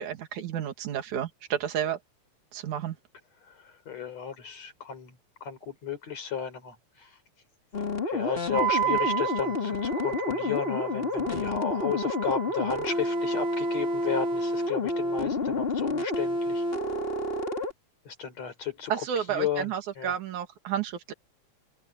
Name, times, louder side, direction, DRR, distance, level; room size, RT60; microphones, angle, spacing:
voice 1, 0.0-2.0 2.5-3.0 18.9-21.1, right 9 dB, 85° right, 3.3 m, -31 dB
voice 2, 3.5-5.2 5.4-7.1 8.1-16.6 18.1-20.1, left 7 dB, 60° left, 5.5 m, -34 dB
sound 1, 7.7-17.7, left 2 dB, 20° left, 2.0 m, -29 dB
Wind instrument woodwind instrument, 8.5-14.6, right 11 dB, 60° right, 3.9 m, -34 dB
omnidirectional pair, 3.3 m